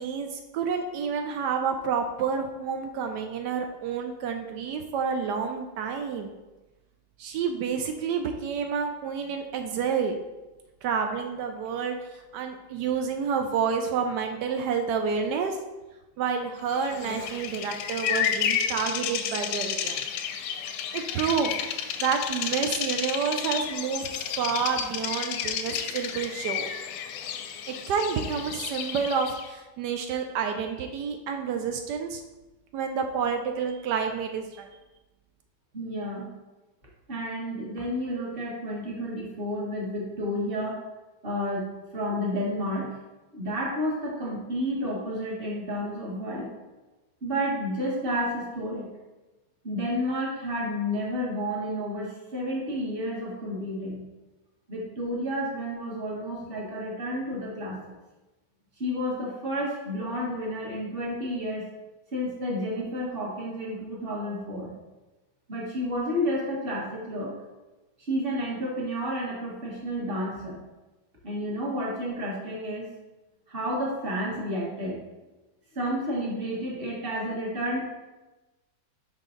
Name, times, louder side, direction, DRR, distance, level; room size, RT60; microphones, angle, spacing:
voice 1, 0.0-6.4 7.2-10.2 10.8-15.6 16.2-20.1 20.9-24.1 24.4-26.7 27.7-32.2 32.7-34.7, right 6 dB, 90° right, 5 dB, 0.9 m, -29 dB
Bird vocalization bird call bird song, 16.8-29.5, left 8 dB, 85° left, 1.5 m, -31 dB
voice 2, 35.7-36.3 37.1-40.8 41.2-43.0 43.3-46.5 47.2-48.9 49.6-54.0 54.7-57.8 58.8-61.7 62.1-64.7 65.5-67.3 68.0-70.6 71.2-72.9 73.5-75.0 75.7-77.8, equal, 30° right, -4 dB, 1.5 m, -31 dB
5.6 x 4.8 x 3.8 m, 1.1 s
omnidirectional pair, 2.4 m